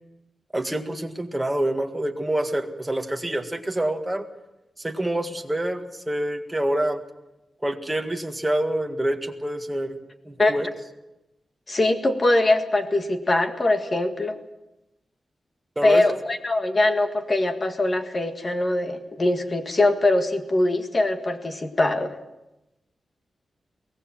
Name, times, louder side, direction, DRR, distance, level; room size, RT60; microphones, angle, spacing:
voice 1, 0.5-4.3 4.8-7.0 7.6-10.0 10.3-10.7 15.8-16.0, right 1 dB, 10° right, 4 dB, 1.9 m, -26 dB
voice 2, 11.7-14.4 15.8-22.1, left 2 dB, 30° left, 7 dB, 1.8 m, -22 dB
23.5 x 18.0 x 7.4 m, 0.94 s
wide cardioid pair, 145°, 0 cm